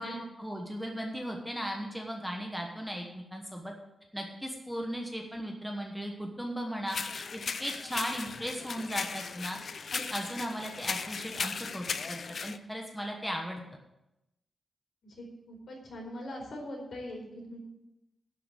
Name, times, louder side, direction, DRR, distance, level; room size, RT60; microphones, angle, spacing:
voice 1, 0.0-3.7 4.1-13.6, equal, ahead, 1 dB, 1.2 m, -37 dB
sound 1, 6.9-12.6, left 5 dB, 50° left, 0.5 m, -37 dB
voice 2, 15.0-17.6, left 1 dB, 65° left, -1 dB, 4.5 m, -41 dB
11.5 x 5.9 x 8.3 m, 0.91 s
wide cardioid pair, 165°, 0 cm